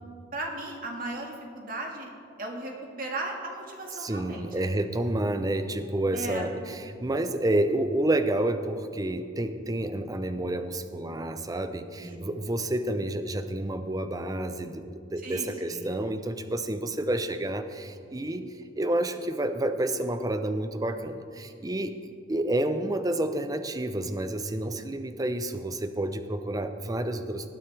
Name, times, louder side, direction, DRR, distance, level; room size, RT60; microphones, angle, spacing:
voice 1, 0.3-2.1 2.4-2.7 3.0-4.7 6.1-6.5 12.0-12.2 12.5-12.6 15.2-15.9, right 2 dB, 50° right, 1 dB, 1.7 m, -36 dB
voice 2, 4.0-18.4 18.8-21.9 22.3-27.5, right 1 dB, 20° right, 9 dB, 0.6 m, -29 dB
19.5 x 9.1 x 3.3 m, 2.3 s
head